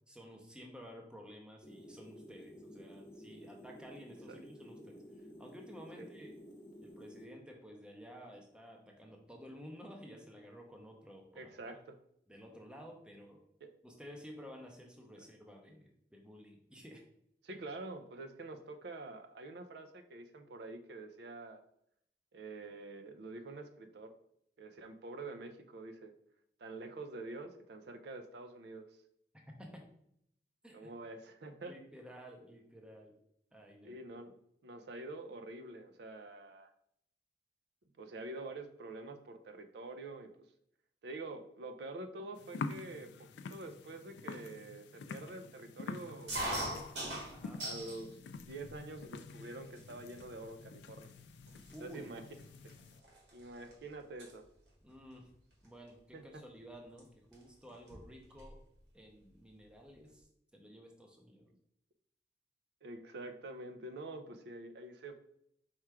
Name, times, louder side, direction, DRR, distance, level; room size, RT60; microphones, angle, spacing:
voice 1, 0.1-5.0 5.4-6.4 6.8-11.7 12.3-13.4 13.8-17.0 17.5-17.6 29.6-29.8 30.6-30.9 31.7-33.1 33.5-34.0 47.3-47.6 51.7-52.1 54.8-55.3 55.6-58.6 58.9-60.3 60.5-61.5, equal, 5° right, 1 dB, 0.6 m, -53 dB
sound 1, 1.6-7.2, equal, 45° left, 0.8 m, -53 dB
voice 2, 11.3-11.9 13.6-13.7 15.1-15.3 17.4-21.6 22.3-24.1 24.6-26.1 26.6-28.8 30.7-31.7 33.8-34.3 34.6-36.7 38.0-40.3 41.0-46.8 47.6-48.2 48.5-51.1 51.8-52.2 52.6-52.7 53.3-54.5 56.1-56.4 62.8-65.1, right 2 dB, 70° right, 7 dB, 0.4 m, -47 dB
sound 2, 42.4-53.0, left 4 dB, 80° left, 0.3 m, -47 dB
sound 3, 46.3-48.0 48.4-49.1 49.8-49.9 50.1-50.5 51.1-51.2 51.5-53.7 54.0-54.3 55.6-55.9 57.0-57.1 57.3-57.4 57.7-58.6, right 1 dB, 90° right, 1.6 m, -41 dB
4.3 x 2.4 x 4.6 m, 0.71 s
head